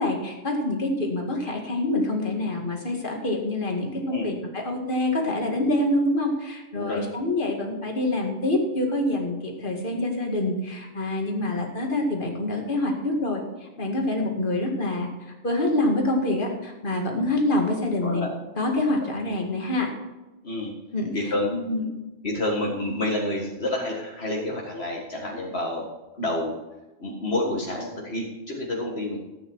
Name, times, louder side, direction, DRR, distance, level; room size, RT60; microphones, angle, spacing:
voice 1, 0.0-15.1 15.4-18.3 18.6-19.9 20.9-21.1 21.5-21.8, left 1 dB, 50° left, 1 dB, 2.3 m, -26 dB
voice 2, 20.4-20.7 21.1-21.5 22.2-25.8 26.2-26.6 27.0-29.2, left 1 dB, 65° left, -2 dB, 2.0 m, -28 dB
14.0 x 8.8 x 4.7 m, 1.1 s
omnidirectional pair, 1.2 m